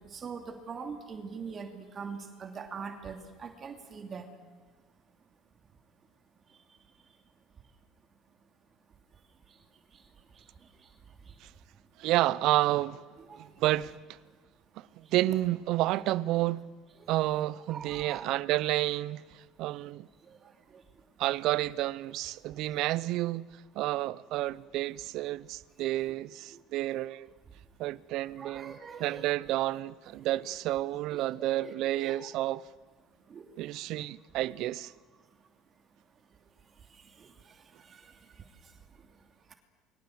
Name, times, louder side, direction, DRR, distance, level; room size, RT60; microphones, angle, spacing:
voice 1, 0.0-4.3 6.5-7.2 9.1-11.8 13.3-13.7 14.3-14.4 15.0-15.1 17.0-17.1 17.7-18.3 20.2-21.1 26.5-26.6 28.4-29.3 30.1-30.3 31.1-32.3 33.1-33.7 34.4-34.6 35.3-35.5 35.9-39.5, right 5 dB, 35° right, 2.8 m, -46 dB
voice 2, 12.0-13.0 13.4-14.2 14.8-16.7 17.1-20.1 21.2-27.3 27.8-32.7 33.6-34.9, right 16 dB, 65° right, 0.8 m, -30 dB
29.0 x 24.0 x 8.0 m
supercardioid pair, 100°, 0 cm